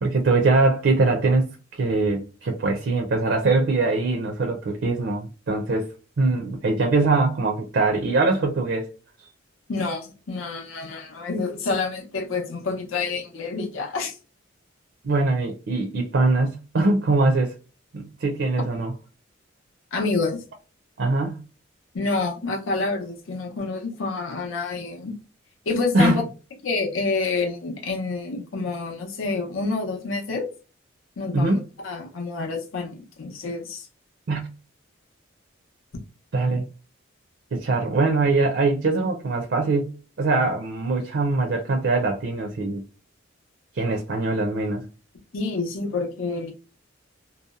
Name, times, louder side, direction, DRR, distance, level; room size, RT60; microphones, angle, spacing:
voice 1, 0.0-5.9 6.2-8.9 15.0-17.5 17.9-18.9 21.0-21.4 25.9-26.1 31.3-31.6 34.3-34.5 36.3-36.6 37.5-39.9 40.2-42.8 43.7-44.9, right 3 dB, 60° right, 0.4 m, -22 dB
voice 2, 9.7-14.2 19.9-20.4 21.9-25.2 25.7-26.2 26.6-30.5 31.2-33.9 45.3-46.5, left 3 dB, 80° left, 0.6 m, -28 dB
2.7 x 2.0 x 2.3 m
head